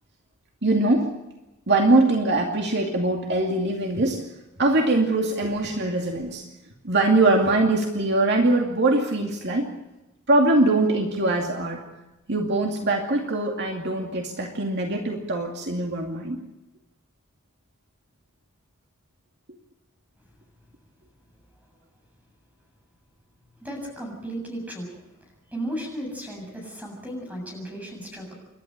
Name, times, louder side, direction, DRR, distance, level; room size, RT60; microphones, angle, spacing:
voice 1, 0.6-1.1 1.7-4.2 4.6-6.5 6.8-9.7 10.3-11.8 12.3-16.4, right 2 dB, 55° right, 2 dB, 2.4 m, -22 dB
voice 2, 23.6-25.0 25.5-28.3, right 1 dB, 5° right, 1 dB, 7.3 m, -35 dB
28.5 x 12.5 x 8.9 m, 0.98 s
head